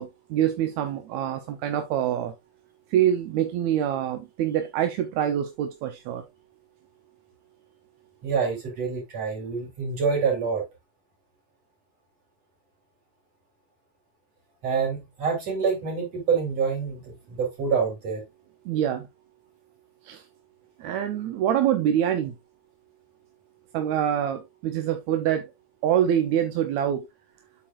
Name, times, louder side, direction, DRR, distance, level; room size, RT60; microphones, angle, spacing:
voice 1, 0.0-2.3 2.9-6.2 18.7-19.1 20.0-20.2 20.8-22.3 23.7-25.4 25.8-27.0, right 10 dB, 75° right, 2.0 m, -25 dB
voice 2, 8.2-10.6 14.6-18.2, right 5 dB, 50° right, 4.5 m, -26 dB
8.2 x 7.1 x 2.5 m
omnidirectional pair, 3.6 m